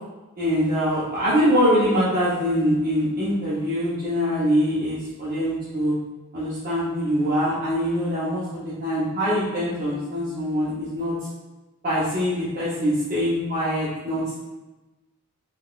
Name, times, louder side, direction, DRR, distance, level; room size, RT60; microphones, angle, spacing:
voice 1, 0.4-5.9 6.3-11.1 11.8-14.4, equal, 40° right, -11 dB, 0.6 m, -23 dB
3.6 x 2.3 x 2.3 m, 1.1 s
head